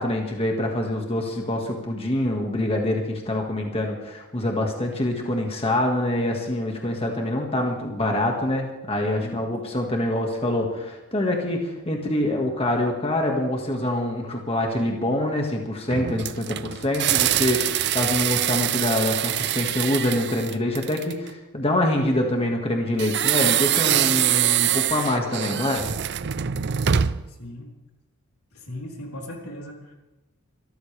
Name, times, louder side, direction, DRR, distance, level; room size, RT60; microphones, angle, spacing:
voice 1, 0.0-25.8, left 1 dB, 25° left, 1 dB, 1.9 m, -25 dB
sound 1, 15.9-21.3 23.0-27.3, right 10 dB, 50° right, 0.5 m, -24 dB
voice 2, 25.3-25.7 27.0-27.8 28.5-29.9, left 1 dB, 85° left, 0 dB, 3.8 m, -39 dB
25.5 x 14.0 x 3.4 m, 1.0 s
head